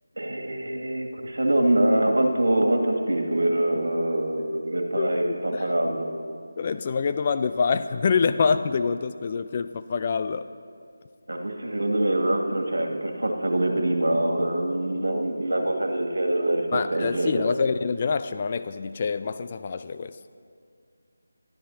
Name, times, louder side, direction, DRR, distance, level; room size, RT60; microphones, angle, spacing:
voice 1, 0.2-6.1 11.3-17.5, right 1 dB, 65° right, 2 dB, 2.2 m, -24 dB
voice 2, 5.0-5.6 6.6-10.4 16.7-20.1, left 5 dB, 30° left, 10 dB, 0.4 m, -26 dB
26.0 x 12.5 x 2.8 m, 2.2 s
figure-of-eight pair, 160°, 0 cm